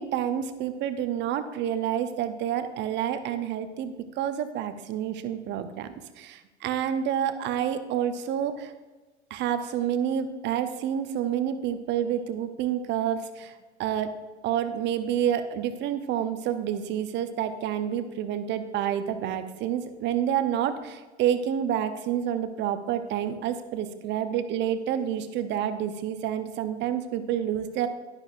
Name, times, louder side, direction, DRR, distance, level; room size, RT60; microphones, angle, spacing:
voice 1, 0.0-8.7 9.3-13.5 13.8-14.1 14.4-27.9, right 9 dB, 30° right, 10 dB, 0.8 m, -28 dB
11.5 x 11.0 x 2.5 m, 1.2 s
figure-of-eight pair, 90°, 35 cm